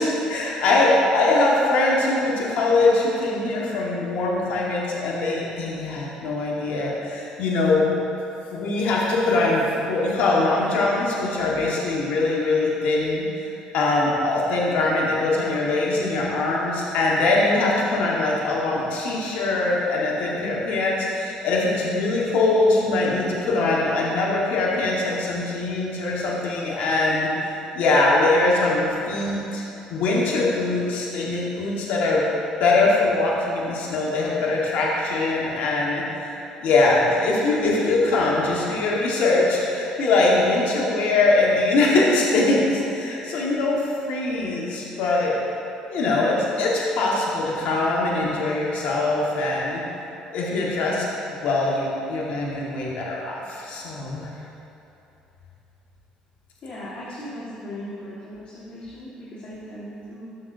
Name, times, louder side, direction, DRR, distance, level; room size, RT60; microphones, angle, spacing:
voice 1, 0.0-7.9 8.5-27.3 27.7-29.6 29.9-32.2 32.6-45.3 45.9-49.8 50.3-51.0 51.4-54.3, left 2 dB, 75° left, -4 dB, 1.4 m, -22 dB
voice 2, 56.6-60.3, left 1 dB, 50° left, -7 dB, 1.6 m, -37 dB
13.0 x 6.0 x 2.6 m, 2.9 s
supercardioid pair, 85°, 3 cm